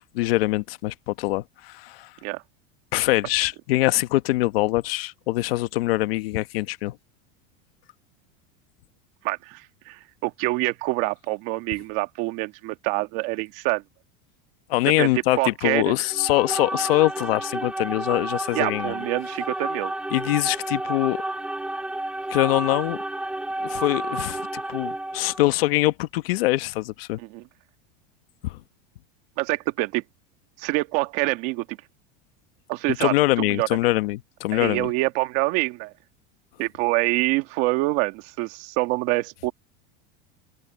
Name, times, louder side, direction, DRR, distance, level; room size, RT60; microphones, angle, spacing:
voice 1, 0.1-2.1 2.9-7.0 14.7-18.9 20.1-21.2 22.3-23.0 23.6-27.2 28.4-28.6 33.0-34.9, left 19 dB, 75° left, 1.2 m, -23 dB
voice 2, 9.2-13.8 15.0-15.9 18.5-19.9 27.2-27.4 29.4-30.0 30.6-31.8 32.7-33.7 34.5-35.9 36.6-39.5, right 21 dB, 45° right, 1.6 m, -26 dB
sound 1, 16.1-25.5, right 1 dB, 5° right, 1.9 m, -31 dB
supercardioid pair, 175°, 29 cm